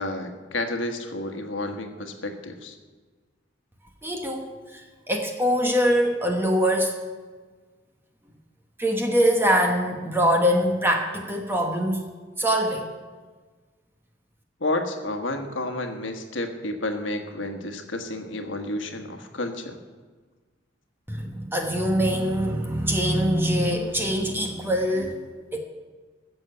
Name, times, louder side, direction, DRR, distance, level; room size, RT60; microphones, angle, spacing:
voice 1, 0.0-2.7 14.6-19.8, left 2 dB, 85° left, 6 dB, 1.4 m, -30 dB
voice 2, 4.0-7.0 8.8-12.1 12.4-12.9 21.1-25.6, equal, 10° right, 2 dB, 1.2 m, -23 dB
15.5 x 7.0 x 7.8 m, 1.4 s
head